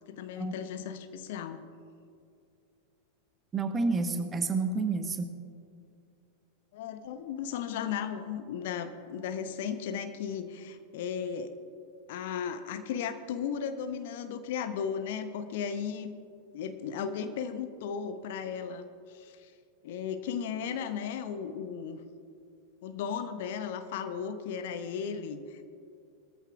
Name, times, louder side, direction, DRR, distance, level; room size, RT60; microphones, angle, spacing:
voice 1, 0.1-1.6 6.7-11.6 12.1-16.1 16.5-19.5 19.8-22.0 22.8-25.6, left 7 dB, 55° left, 10 dB, 0.8 m, -35 dB
voice 2, 3.5-5.3, right 3 dB, 20° right, 7 dB, 1.0 m, -29 dB
20.5 x 14.0 x 2.4 m, 2.4 s
figure-of-eight pair, 90°, 0 cm